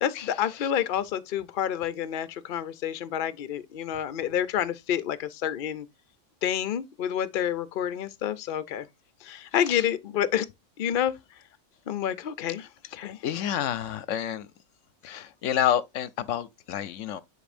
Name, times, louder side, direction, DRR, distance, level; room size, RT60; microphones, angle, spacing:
voice 1, 0.0-5.9 6.4-8.9 9.2-10.5 10.8-11.2 11.9-12.6 12.9-13.2, left 10 dB, 50° left, 0.7 m, -28 dB
voice 2, 13.2-14.5 15.0-17.2, left 10 dB, 75° left, 0.9 m, -29 dB
10.5 x 4.3 x 2.5 m
omnidirectional pair, 1.3 m